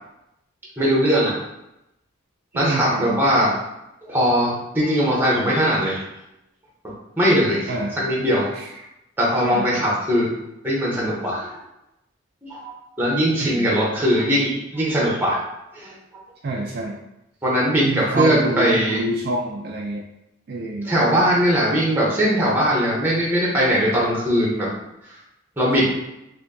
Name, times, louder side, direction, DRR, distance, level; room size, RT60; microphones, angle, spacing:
voice 1, 0.8-1.3 2.5-3.6 4.0-6.0 7.2-8.5 9.2-10.3 10.6-11.6 12.4-15.4 15.7-15.9 17.4-19.0 20.8-24.7 25.6-25.8, equal, 10° right, -5 dB, 0.9 m, -20 dB
voice 2, 2.5-3.2 7.7-8.0 8.5-8.7 9.4-9.6 13.4-13.7 16.4-17.0 17.8-20.0 20.5-20.9, right 2 dB, 50° right, -1 dB, 0.4 m, -26 dB
4.4 x 2.7 x 2.6 m, 0.88 s
head